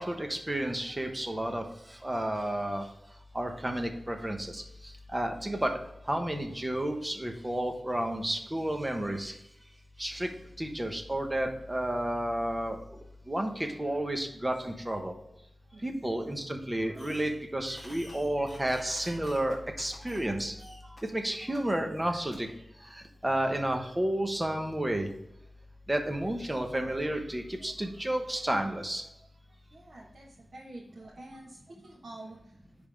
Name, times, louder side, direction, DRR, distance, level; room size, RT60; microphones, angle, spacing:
voice 1, 0.0-1.6 2.0-2.8 3.3-4.6 5.1-5.7 6.1-9.3 10.0-10.3 10.6-12.8 13.3-15.1 15.8-20.8 21.0-22.5 22.9-25.1 25.9-29.0, right 1 dB, 15° right, 4 dB, 1.0 m, -31 dB
Fireworks, 17.0-17.4 17.6-20.3 20.6-21.0 21.5-21.6 22.3-22.4, equal, 10° left, 2.4 m, -51 dB
voice 2, 29.7-32.5, right 1 dB, 70° right, -5 dB, 1.4 m, -48 dB
10.5 x 3.5 x 3.4 m, 0.82 s
wide cardioid pair, 110°, 0 cm